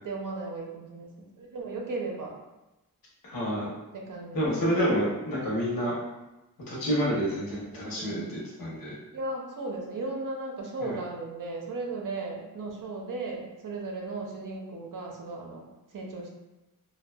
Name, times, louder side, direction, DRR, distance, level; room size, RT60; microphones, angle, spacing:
voice 1, 0.0-2.4 3.9-4.5 7.9-8.3 9.1-16.3, right 3 dB, 65° right, 0 dB, 0.5 m, -36 dB
voice 2, 3.2-3.7 4.3-5.9 6.7-8.9 10.8-11.0, equal, 70° left, -6 dB, 0.9 m, -28 dB
2.5 x 2.2 x 2.2 m, 1.0 s
wide cardioid pair, 140°, 35 cm